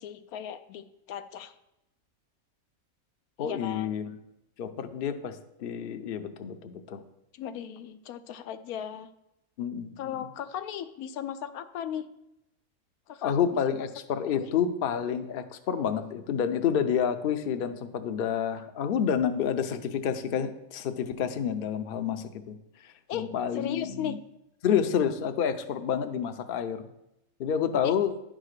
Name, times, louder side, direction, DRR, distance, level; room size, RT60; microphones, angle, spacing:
voice 1, 0.0-1.5 3.4-3.9 7.3-9.1 10.0-12.1 13.1-13.3 13.6-13.9 14.3-14.5 23.1-23.3 23.5-24.2 27.8-27.9, left 9 dB, 90° left, 10 dB, 1.1 m, -36 dB
voice 2, 3.4-4.1 4.6-7.0 9.6-10.2 13.2-24.2 24.6-26.8 27.4-28.1, left 8 dB, 55° left, 8 dB, 0.6 m, -29 dB
10.5 x 3.8 x 6.5 m, 0.86 s
omnidirectional pair, 1.5 m